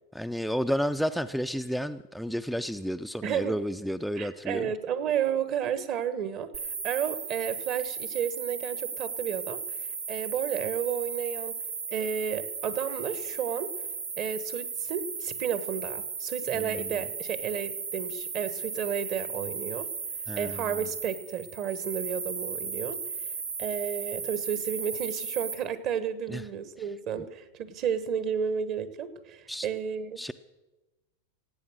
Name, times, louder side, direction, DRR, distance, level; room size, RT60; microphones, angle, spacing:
voice 1, 0.1-4.7 16.5-17.0 20.3-20.8 26.3-26.4 29.5-29.7 30.2-30.3, equal, ahead, 10 dB, 0.4 m, -31 dB
voice 2, 3.2-3.5 4.2-6.5 6.8-9.6 10.1-11.6 11.9-13.7 14.2-19.9 20.4-23.0 23.6-30.2, right 8 dB, 45° right, 14 dB, 1.1 m, -32 dB
sound 1, 6.5-25.5, right 5 dB, 85° right, 2.3 m, -36 dB
17.5 x 8.5 x 6.4 m, 1.1 s
hypercardioid pair, 95°, 0 cm